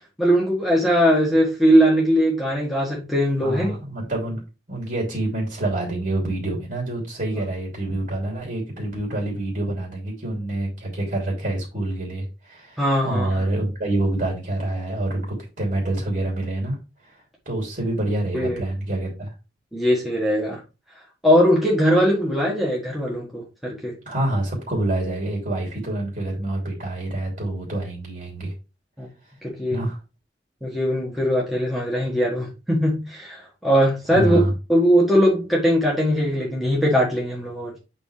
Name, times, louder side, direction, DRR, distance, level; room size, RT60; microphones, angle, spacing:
voice 1, 0.2-3.7 12.8-13.4 18.3-18.6 19.7-20.6 21.2-24.0 29.0-29.1 29.4-29.8 30.6-34.4 34.7-37.8, equal, ahead, 1.6 m, -20 dB
voice 2, 3.4-4.4 4.7-16.8 17.0-17.1 17.4-19.3 24.0-28.5 29.7-30.0 34.1-34.5, right 1 dB, 50° right, 3.0 m, -27 dB
8.2 x 5.2 x 3.3 m
head